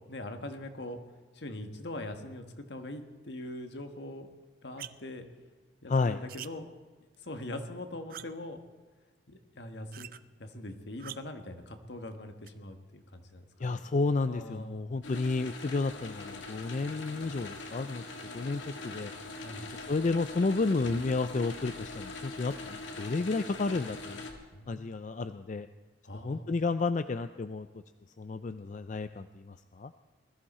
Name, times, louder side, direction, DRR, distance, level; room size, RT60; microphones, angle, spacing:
voice 1, 0.1-1.0 1.3-4.3 4.6-5.3 5.8-6.7 7.2-8.6 9.3-10.1 10.4-13.8 14.2-14.9 19.4-19.7 24.5-24.9 26.0-26.5, left 1 dB, 70° left, 6 dB, 1.4 m, -42 dB
sound 1, 4.8-5.2 6.3-6.5 7.1-7.2 8.1-8.5 9.9-10.2 11.0-11.4 12.5-12.6, right 11 dB, 50° right, 0.5 m, -45 dB
voice 2, 5.9-6.2 13.6-18.0 18.3-19.1 19.7-24.2 24.7-25.7 26.2-27.7 28.2-29.9, left 3 dB, 40° left, 11 dB, 0.4 m, -31 dB
sound 2, 15.0-24.3, left 2 dB, 90° left, 2.1 m, -42 dB
20.5 x 14.0 x 4.3 m, 1.4 s
head